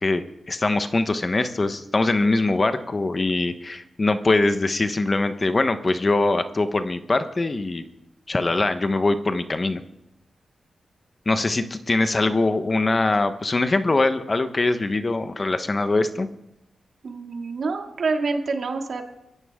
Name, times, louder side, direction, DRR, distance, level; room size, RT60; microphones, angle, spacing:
voice 1, 0.0-7.8 8.3-9.8 11.3-16.3, left 2 dB, 35° left, 9 dB, 1.2 m, -22 dB
voice 2, 17.0-19.1, right 4 dB, 70° right, 3 dB, 2.5 m, -27 dB
23.5 x 15.0 x 3.8 m, 0.87 s
cardioid pair, 75°, 0 cm